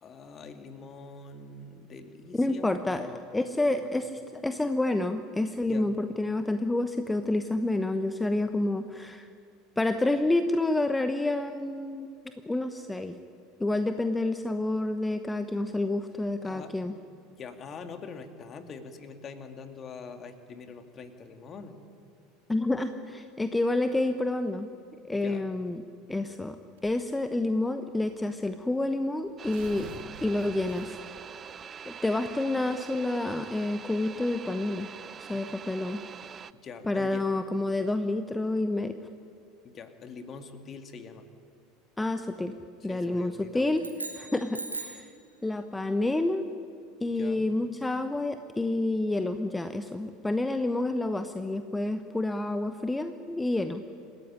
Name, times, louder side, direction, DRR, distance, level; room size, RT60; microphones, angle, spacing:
voice 1, 0.0-3.2 3.6-3.9 5.7-5.9 16.4-16.7 17.3-21.8 25.1-25.5 35.3-35.4 36.6-37.3 39.6-41.3 42.8-43.7 47.1-47.5, left 5 dB, 35° left, 7 dB, 2.3 m, -44 dB
voice 2, 2.3-4.1 4.3-9.3 9.8-12.1 12.5-13.2 13.6-16.9 22.5-24.7 25.1-25.8 26.1-26.6 26.8-29.9 30.2-31.0 31.9-34.9 35.2-36.0 36.9-38.9 42.0-42.5 42.8-43.8 44.2-45.1 45.4-46.4 47.0-53.8, left 2 dB, 10° left, 9 dB, 1.1 m, -29 dB
Tearing, 26.8-27.2 28.1-28.2 28.4-28.5 29.2-31.2, right 3 dB, 65° right, 5.0 m, -47 dB
sound 1, 29.4-36.5, right 7 dB, 30° right, 0.7 m, -44 dB
sound 2, 43.8-45.1, right 3 dB, 85° right, 2.1 m, -38 dB
27.5 x 15.0 x 10.0 m, 2.3 s
figure-of-eight pair, 75°, 0 cm